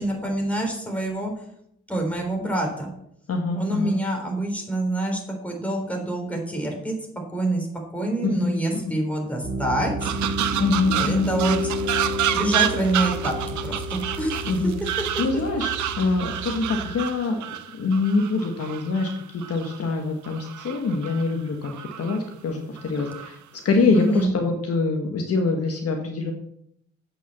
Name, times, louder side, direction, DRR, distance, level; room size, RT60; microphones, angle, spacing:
voice 1, 0.0-1.3 1.9-2.9 3.5-7.0 7.3-7.7 7.9-10.1 10.9-11.6 12.3-13.3 13.6-14.5 23.9-24.3, right 1 dB, 5° left, 1 dB, 3.6 m, -26 dB
voice 2, 3.3-4.0 8.2-9.0 10.6-11.3 14.4-14.8 15.2-17.4 17.7-26.3, left 3 dB, 50° left, 3 dB, 1.4 m, -25 dB
Piano, 9.4-16.9, equal, 35° right, 4.2 m, -31 dB
sound 1, 10.0-19.8 20.2-21.3 21.6-22.2 22.8-23.3 23.9-24.3, right 11 dB, 70° right, 0.8 m, -29 dB
8.1 x 6.0 x 7.1 m, 0.73 s
cardioid pair, 90°, 30 cm